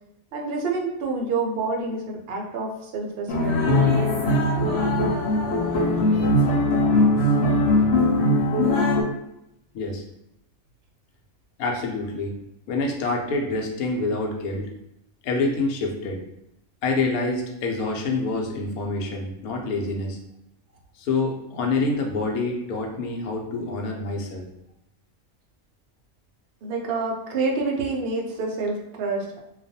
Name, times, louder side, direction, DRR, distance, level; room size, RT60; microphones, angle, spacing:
voice 1, 0.3-3.6 26.6-29.4, right 3 dB, 65° right, 0 dB, 0.6 m, -28 dB
sound 1, 3.3-9.0, left 1 dB, 65° left, 0.5 m, -20 dB
voice 2, 11.6-12.3 12.7-14.7 15.2-16.2 16.8-20.2 21.0-24.4, left 3 dB, 80° left, 1 dB, 1.0 m, -26 dB
2.4 x 2.3 x 2.6 m, 0.84 s
omnidirectional pair, 1.5 m